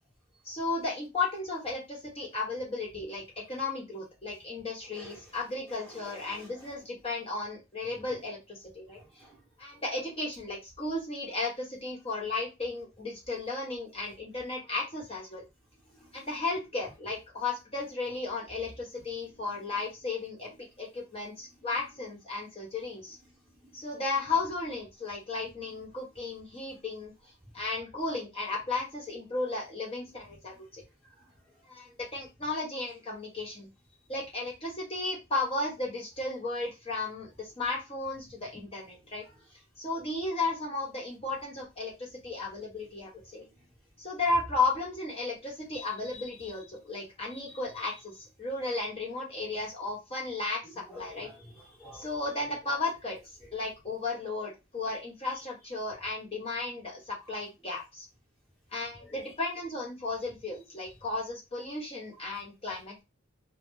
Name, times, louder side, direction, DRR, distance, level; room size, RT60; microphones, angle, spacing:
voice 1, 0.4-9.0 9.6-15.4 16.1-20.5 20.8-23.2 23.7-27.1 27.5-30.8 31.6-33.7 34.1-39.2 39.8-43.5 44.0-48.1 48.4-51.3 51.9-53.2 53.5-58.0 58.7-63.0, left 3 dB, 30° left, -3 dB, 0.9 m, -34 dB
voice 2, 4.8-5.2 5.8-6.5 9.0-9.4 15.9-16.3 26.7-26.8 31.2-31.3 45.7-46.5 47.3-47.5 50.9-52.2 59.0-59.2, left 1 dB, ahead, -5 dB, 0.9 m, -51 dB
2.1 x 2.0 x 3.1 m, 0.24 s
head